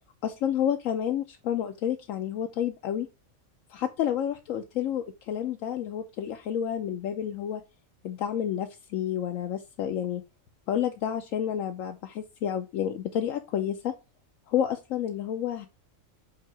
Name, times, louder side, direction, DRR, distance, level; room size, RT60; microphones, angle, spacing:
voice 1, 0.2-3.1 3.7-7.6 8.0-10.2 10.7-13.9 14.5-15.7, left 9 dB, 80° left, 5 dB, 1.0 m, -30 dB
8.2 x 2.8 x 4.5 m, 0.28 s
omnidirectional pair, 1.4 m